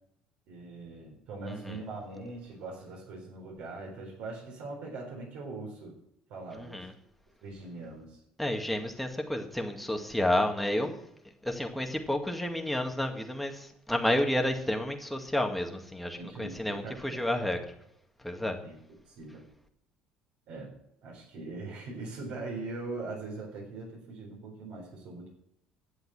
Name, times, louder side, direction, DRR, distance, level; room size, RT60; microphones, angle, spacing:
voice 1, 0.5-6.0 6.3-6.9 7.4-8.2 16.2-17.6 18.6-18.8 19.1-19.4 20.5-20.7 21.0-25.3, right 3 dB, 75° right, -2 dB, 4.1 m, -41 dB
voice 2, 6.5-6.9 8.4-10.9 11.4-17.7 18.2-18.6, left 1 dB, 5° left, 3 dB, 2.0 m, -30 dB
11.5 x 7.7 x 6.0 m, 0.76 s
cardioid pair, 105°, 2 cm